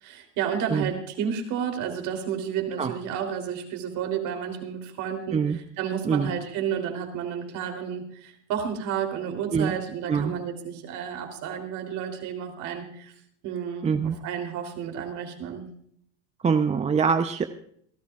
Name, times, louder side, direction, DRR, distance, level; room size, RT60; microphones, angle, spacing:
voice 1, 0.0-13.1 13.4-15.7, right 8 dB, 55° right, 4 dB, 3.5 m, -31 dB
voice 2, 13.8-14.2 16.4-17.5, right 6 dB, 20° right, 8 dB, 0.8 m, -24 dB
28.0 x 12.0 x 2.5 m, 0.65 s
hypercardioid pair, 100°, 36 cm